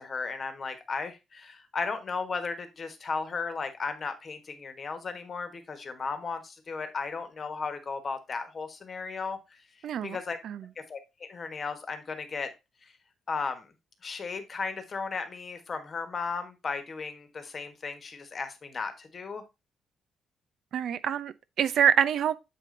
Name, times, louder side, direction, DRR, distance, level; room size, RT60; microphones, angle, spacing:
voice 1, 0.0-9.4 10.0-10.4 10.9-12.5 13.3-13.7 14.0-19.4, left 4 dB, 30° left, 1.3 m, -35 dB
voice 2, 9.8-10.2 10.4-10.6 20.7-22.4, right 9 dB, 55° right, 0.6 m, -26 dB
7.6 x 5.0 x 3.8 m
cardioid pair, 175°, 0 cm